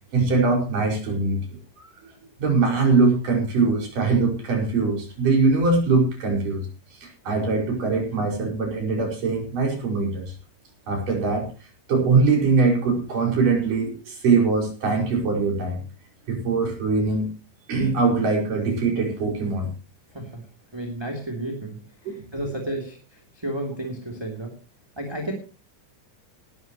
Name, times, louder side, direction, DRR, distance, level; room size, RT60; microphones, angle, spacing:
voice 1, 0.1-1.9 2.4-6.7 6.9-10.3 10.9-11.5 11.9-15.8 16.3-17.3 17.7-19.7 22.1-22.2, right 4 dB, 75° right, 1 dB, 7.1 m, -22 dB
voice 2, 20.1-20.5 20.7-24.6 25.0-25.3, right 1 dB, 10° right, 1 dB, 2.7 m, -32 dB
19.5 x 12.5 x 3.0 m, 0.36 s
omnidirectional pair, 3.8 m